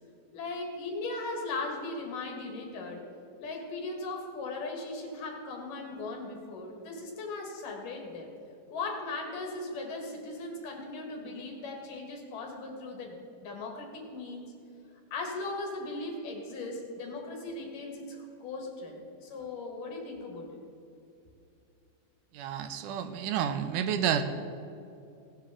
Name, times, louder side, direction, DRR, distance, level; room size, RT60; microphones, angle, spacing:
voice 1, 0.3-3.0 3.4-8.3 8.7-13.2 13.4-14.5 15.1-20.6, left 3 dB, 85° left, 1 dB, 3.4 m, -38 dB
voice 2, 22.3-24.2, right 9 dB, 80° right, 9 dB, 2.2 m, -30 dB
17.5 x 10.5 x 3.7 m, 2.6 s
omnidirectional pair, 3.7 m